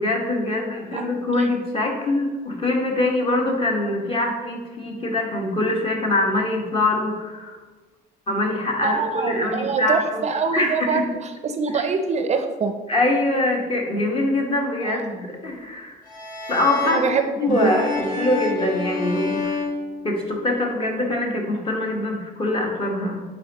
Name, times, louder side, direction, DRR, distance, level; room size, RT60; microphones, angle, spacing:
voice 1, 0.0-7.6 8.3-10.2 10.5-11.1 11.7-11.8 12.9-16.0 16.5-17.1 17.4-19.6 20.0-23.2, left 2 dB, 35° left, 0 dB, 1.3 m, -23 dB
voice 2, 8.8-11.1 11.4-12.7 14.8-15.0 16.8-17.7, right 5 dB, 40° right, 7 dB, 0.5 m, -24 dB
sound 1, 16.0-20.7, left 3 dB, 50° left, 1.7 m, -30 dB
8.6 x 4.4 x 2.9 m, 1.3 s
cardioid pair, 110°, 17 cm